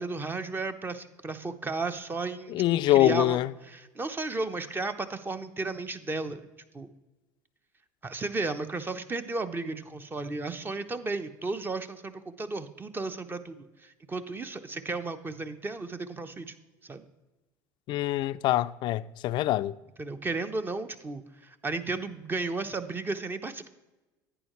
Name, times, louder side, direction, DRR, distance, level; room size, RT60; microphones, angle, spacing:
voice 1, 0.0-2.6 2.9-3.4 3.7-6.5 6.7-6.9 8.0-16.5 16.8-17.0 20.0-23.7, right 3 dB, 20° right, 0.8 m, -34 dB
voice 2, 2.5-3.5 17.9-19.7, left 15 dB, 60° left, 0.4 m, -24 dB
11.0 x 9.0 x 3.1 m
hypercardioid pair, 80°, 9 cm